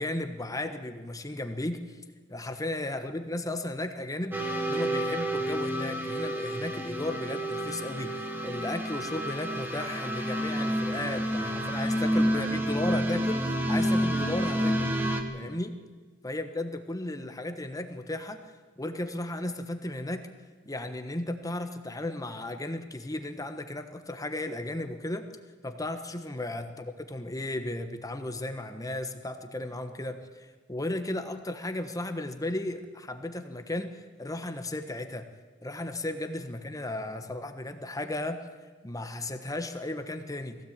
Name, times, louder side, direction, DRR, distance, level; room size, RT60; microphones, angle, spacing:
voice 1, 0.0-1.8 2.3-4.4 4.7-15.0 15.3-15.7 16.2-18.4 18.8-20.3 20.6-25.3 25.6-35.2 35.6-38.4 38.8-40.6, left 1 dB, 20° left, 8 dB, 1.3 m, -35 dB
sound 1, 4.3-15.2, equal, 10° right, 1.7 m, -29 dB
20.5 x 16.5 x 8.9 m, 1.3 s
head